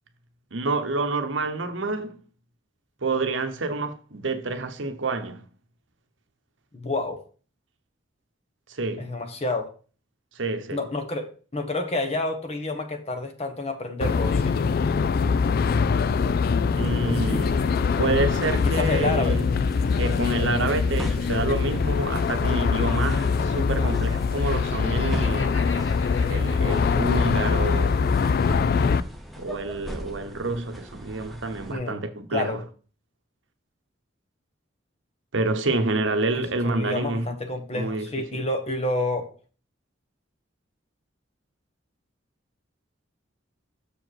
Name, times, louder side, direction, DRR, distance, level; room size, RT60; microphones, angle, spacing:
voice 1, 0.5-2.2 3.0-5.4 8.7-9.1 10.4-10.8 16.8-19.5 20.0-25.7 26.3-28.0 29.4-32.6 35.3-37.3 37.7-38.4, right 2 dB, 75° right, 0.9 m, -28 dB
voice 2, 6.7-7.2 9.0-9.7 10.7-14.6 18.6-19.4 31.7-32.0 32.3-32.6 36.6-39.3, left 2 dB, 35° left, 1.0 m, -29 dB
sound 1, 14.0-29.0, left 5 dB, 50° left, 0.3 m, -23 dB
sound 2, 16.8-31.7, equal, ahead, 0.7 m, -40 dB
Laughter, 24.5-28.2, left 3 dB, 65° left, 1.3 m, -43 dB
6.8 x 4.8 x 4.6 m
head